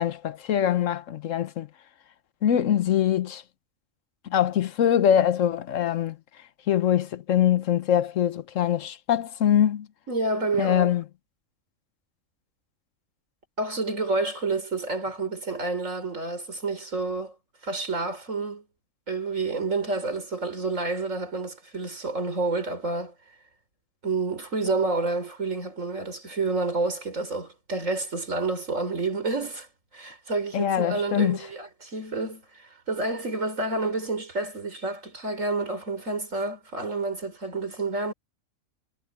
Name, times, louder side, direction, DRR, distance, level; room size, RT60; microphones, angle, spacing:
voice 1, 0.0-1.7 2.4-3.4 4.2-6.2 6.7-9.9 10.6-11.0 30.5-31.4, left 10 dB, 80° left, 1.2 m, -23 dB
voice 2, 10.1-10.9 13.6-17.3 17.6-18.6 19.1-23.1 24.0-29.7 29.9-38.1, right 3 dB, 80° right, 4.8 m, -29 dB
omnidirectional pair, 1.3 m